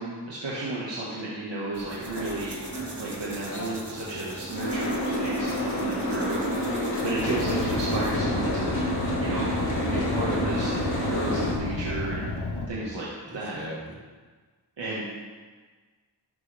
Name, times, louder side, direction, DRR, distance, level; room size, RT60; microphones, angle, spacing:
voice 1, 0.0-2.6 3.0-8.7 9.2-9.6 9.9-12.3 12.7-13.1 13.3-13.6 14.8-15.0, right 2 dB, 90° right, -6 dB, 2.0 m, -33 dB
sound 1, 1.7-8.2, right 3 dB, 65° right, 1.9 m, -46 dB
Boat Water vehicle, 1.8-11.5, equal, 45° left, 3.2 m, -29 dB
Car, 7.2-12.7, left 2 dB, 65° left, 1.3 m, -32 dB
voice 2, 13.3-14.0, equal, 35° right, -5 dB, 3.5 m, -39 dB
13.0 x 9.8 x 3.6 m, 1.4 s
wide cardioid pair, 60°, 43 cm